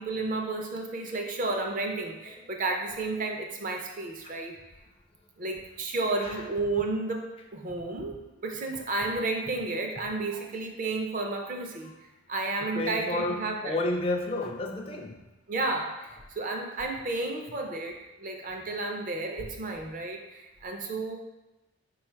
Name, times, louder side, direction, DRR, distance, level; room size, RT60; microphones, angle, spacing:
voice 1, 0.0-4.5 5.4-13.8 15.5-21.2, right 2 dB, 40° right, 2 dB, 0.5 m, -32 dB
voice 2, 12.6-15.2 19.4-19.5, left 2 dB, 30° left, 2 dB, 0.4 m, -32 dB
4.6 x 2.3 x 4.4 m, 1.0 s
head